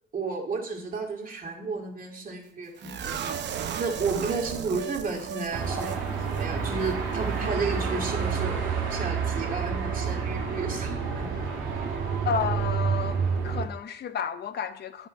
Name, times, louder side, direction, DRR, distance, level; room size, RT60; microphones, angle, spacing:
voice 1, 0.1-8.6 8.9-11.3, right 4 dB, 45° right, 2.3 m, -32 dB
sound 1, 2.8-6.0 6.3-6.4 6.8-6.9, right 8 dB, 60° right, 0.8 m, -35 dB
Car passing by / Traffic noise roadway noise / Engine, 5.5-13.7, right 6 dB, 85° right, 2.0 m, -29 dB
voice 2, 12.2-15.1, left 7 dB, 55° left, 0.8 m, -31 dB
9.5 x 5.0 x 5.2 m
cardioid pair, 90°, 20 cm